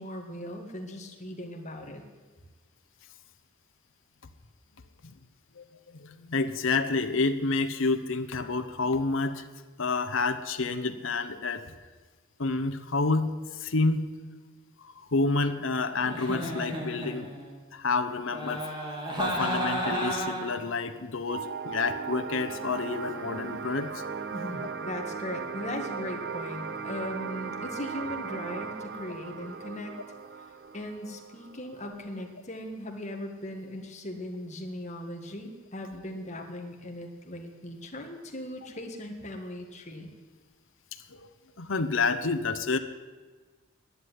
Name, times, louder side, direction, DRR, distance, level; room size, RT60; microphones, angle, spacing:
voice 1, 0.0-2.1 24.3-30.0 30.7-40.1, left 1 dB, 35° left, 3 dB, 1.7 m, -38 dB
voice 2, 5.9-9.4 9.8-11.6 12.4-13.3 13.6-14.1 14.8-17.3 17.7-18.6 19.2-23.9 24.5-24.7 41.1-41.3 41.6-42.8, left 3 dB, 65° left, 8 dB, 0.8 m, -29 dB
Giggle, 16.0-17.5 18.3-20.6, right 1 dB, 20° right, 2.5 m, -32 dB
sound 1, 21.3-32.3, right 5 dB, 50° right, 0.6 m, -38 dB
11.0 x 9.8 x 9.5 m, 1.4 s
head